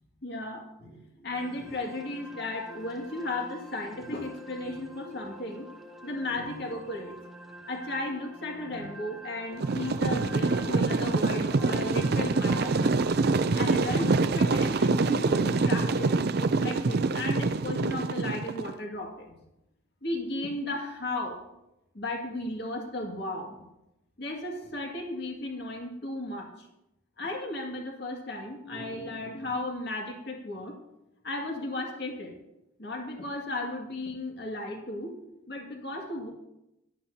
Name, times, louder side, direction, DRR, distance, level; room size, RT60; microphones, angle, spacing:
voice 1, 0.2-5.7 6.0-7.1 7.7-13.0 13.3-19.4 20.0-21.4 21.9-23.6 24.2-26.5 27.2-30.8 31.2-32.3 32.8-35.2 35.5-36.3, left 2 dB, 50° left, 1 dB, 2.2 m, -35 dB
sound 1, 1.3-16.2, equal, ahead, 1.0 m, -47 dB
sound 2, 9.6-18.7, right 3 dB, 50° right, 0.4 m, -25 dB
17.0 x 12.0 x 2.8 m, 0.89 s
head